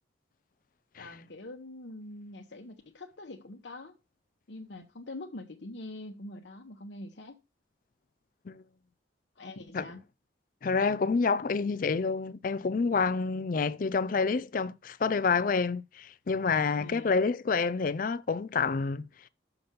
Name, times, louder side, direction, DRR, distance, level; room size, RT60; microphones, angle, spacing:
voice 1, 1.0-4.0 4.5-7.4 9.4-10.0 16.8-17.1, left 2 dB, 65° left, 1.0 m, -44 dB
voice 2, 10.6-19.0, left 4 dB, 45° left, 0.4 m, -28 dB
7.0 x 5.8 x 5.2 m
head